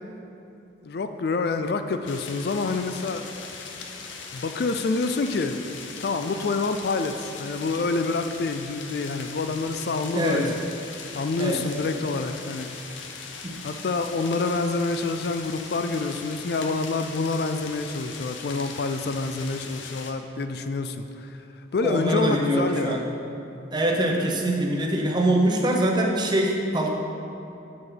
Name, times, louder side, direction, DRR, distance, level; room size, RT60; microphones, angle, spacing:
voice 1, 0.8-3.3 4.3-5.6 6.0-10.6 11.1-12.7 13.6-23.0, left 3 dB, 55° left, 8 dB, 0.4 m, -27 dB
sound 1, 2.1-20.1, left 5 dB, 80° left, 0.8 m, -40 dB
voice 2, 10.1-10.5 11.4-11.6 13.4-13.6 21.8-23.1 23.7-26.9, right 1 dB, 20° right, 0 dB, 0.8 m, -23 dB
9.5 x 7.2 x 3.9 m, 2.9 s
head